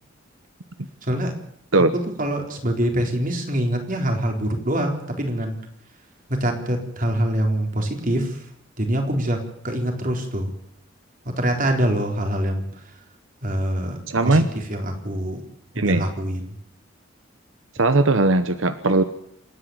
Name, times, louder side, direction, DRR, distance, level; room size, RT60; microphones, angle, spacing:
voice 1, 1.0-1.3 2.2-5.6 6.4-8.4 8.8-9.4 9.6-10.5 11.4-12.6 13.4-14.0 14.2-14.4 14.7-15.4 15.7-16.5, right 1 dB, 45° right, 3 dB, 4.0 m, -24 dB
voice 2, 14.1-14.5 15.8-16.0 17.8-19.0, right 2 dB, 85° right, 11 dB, 1.0 m, -18 dB
27.5 x 10.0 x 9.5 m, 0.71 s
head